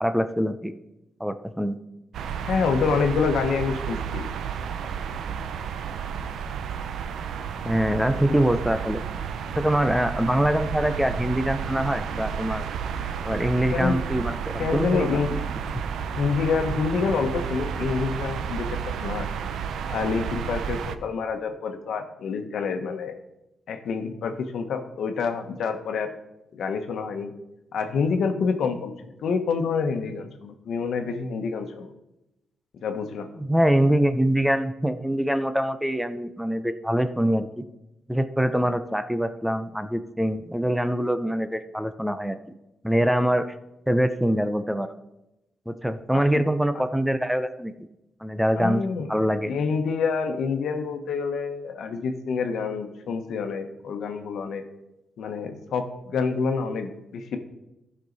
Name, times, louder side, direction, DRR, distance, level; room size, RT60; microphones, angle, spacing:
voice 1, 0.0-0.7 1.2-1.8 7.6-9.0 9.6-12.6 13.2-15.2 33.4-37.6 38.1-42.4 42.8-43.5 43.9-44.9 45.7-47.7 48.2-48.8 49.1-49.5, equal, 5° right, 10 dB, 0.5 m, -24 dB
sound 1, 2.1-21.0, right 7 dB, 90° right, 0.6 m, -31 dB
voice 2, 2.4-4.3 13.7-14.0 14.6-15.4 16.2-19.3 19.9-23.2 23.7-26.1 26.5-27.3 27.7-28.9 29.2-31.9 32.8-33.3 46.1-46.2 46.7-46.8 48.6-49.1 49.5-54.6 55.2-57.4, left 5 dB, 80° left, 6 dB, 1.1 m, -27 dB
14.0 x 5.6 x 4.0 m, 0.92 s
cardioid pair, 125°, 0 cm